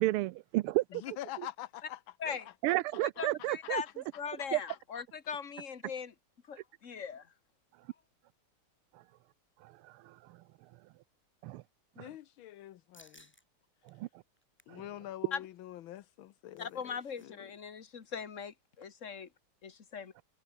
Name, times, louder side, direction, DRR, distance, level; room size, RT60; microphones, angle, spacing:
voice 1, 0.0-0.8 2.6-3.8 4.5-4.6 9.6-10.2 11.4-11.6 12.0-12.1 13.9-14.1 14.7-14.8, right 17 dB, 85° right, 1.5 m, -31 dB
voice 2, 0.9-2.0 2.5-3.2 3.6-3.7 4.7-5.0 12.0-13.3 14.7-17.5, left 13 dB, 70° left, 1.5 m, -46 dB
voice 3, 3.0-6.1 6.5-7.3 15.3-15.4 16.6-19.3 19.6-20.1, left 6 dB, 40° left, 1.8 m, -40 dB
sound 1, 12.9-13.4 13.9-14.0 14.4-14.8 16.1-17.3 17.5-17.6 18.0-18.3, equal, 5° left, 3.8 m, -62 dB
omnidirectional pair, 2.4 m